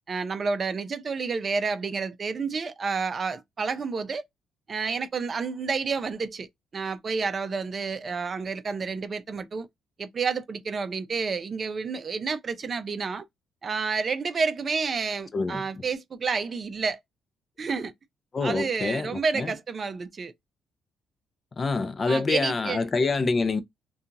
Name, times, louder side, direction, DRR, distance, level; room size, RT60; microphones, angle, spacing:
voice 1, 0.1-4.2 4.7-6.5 6.7-9.7 10.0-13.2 13.6-17.0 17.6-17.9 18.4-20.3 22.1-22.9, right 5 dB, 35° right, 0.5 m, -30 dB
voice 2, 15.3-15.7 18.3-19.5 21.6-23.6, left 3 dB, 30° left, 0.4 m, -26 dB
2.8 x 2.3 x 2.5 m
cardioid pair, 130°, 0 cm